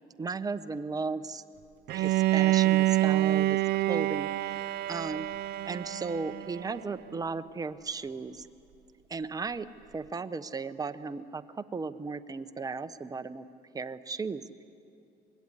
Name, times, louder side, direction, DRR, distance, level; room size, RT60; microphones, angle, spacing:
voice 1, 0.2-1.4 1.9-5.3 5.7-8.5 9.1-9.7 9.9-13.4 13.7-14.6, right 4 dB, 20° right, 10 dB, 0.9 m, -36 dB
Bowed string instrument, 1.9-6.9, right 16 dB, 70° right, 0.5 m, -27 dB
26.0 x 21.0 x 9.9 m, 2.7 s
cardioid pair, 110°, 17 cm